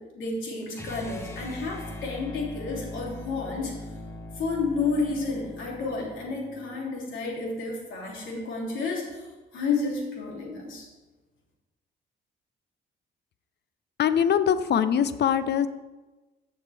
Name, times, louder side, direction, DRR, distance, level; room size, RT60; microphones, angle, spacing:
voice 1, 0.1-3.7 4.3-10.9, left 4 dB, 80° left, -2 dB, 3.1 m, -31 dB
sound 1, 0.7-6.8, left 2 dB, 15° left, 1.4 m, -41 dB
voice 2, 14.0-15.7, left 8 dB, 60° left, 13 dB, 0.7 m, -22 dB
15.0 x 6.4 x 3.5 m, 1.2 s
cardioid pair, 90°, 20 cm